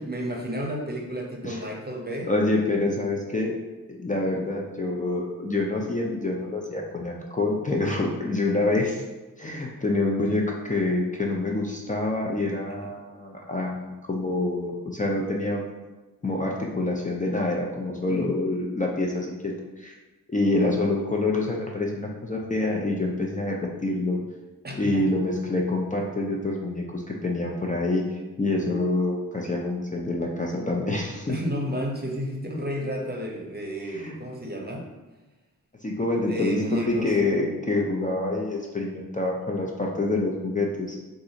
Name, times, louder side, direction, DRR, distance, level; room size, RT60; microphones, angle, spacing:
voice 1, 0.1-2.3 12.8-12.9 18.1-18.3 24.6-25.1 31.3-34.9 36.3-37.1, equal, 30° right, -1 dB, 0.8 m, -31 dB
voice 2, 2.3-3.5 3.9-9.0 9.4-15.7 16.2-19.9 20.3-23.6 23.8-24.2 24.7-31.4 33.9-34.2 35.8-41.0, left 2 dB, 25° left, -1 dB, 0.5 m, -26 dB
2.6 x 2.5 x 3.9 m, 1.1 s
cardioid pair, 45°, 34 cm